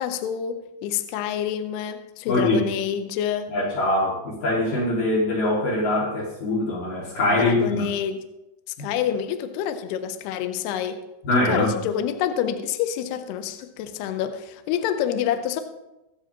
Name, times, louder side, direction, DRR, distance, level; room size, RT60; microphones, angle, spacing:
voice 1, 0.0-3.5 7.4-8.2 8.8-11.0 11.5-15.6, left 9 dB, 80° left, 8 dB, 2.4 m, -27 dB
voice 2, 2.3-2.6 3.5-7.8 8.8-8.9 11.2-11.7, left 1 dB, 50° left, -5 dB, 3.2 m, -23 dB
23.0 x 7.8 x 3.0 m, 0.95 s
omnidirectional pair, 5.7 m